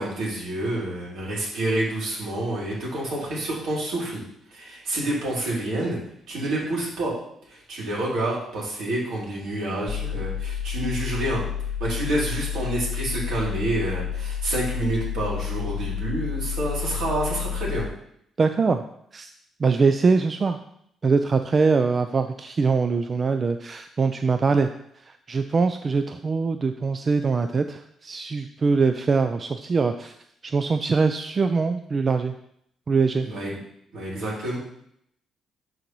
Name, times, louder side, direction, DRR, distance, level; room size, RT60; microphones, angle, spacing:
voice 1, 0.0-4.2 4.5-6.0 6.3-7.2 7.5-11.4 11.8-17.9 33.2-33.6 33.9-34.6, right 1 dB, 75° right, -5 dB, 2.9 m, -28 dB
sound 1, 9.9-17.9, left 8 dB, 60° left, 0.3 m, -30 dB
voice 2, 18.4-18.8 19.1-19.3 19.6-20.6 21.0-24.7 25.0-30.1 30.4-32.3 32.9-33.3, right 4 dB, 40° right, 8 dB, 0.3 m, -23 dB
11.5 x 4.0 x 3.0 m, 0.72 s
cardioid pair, 90°, 0 cm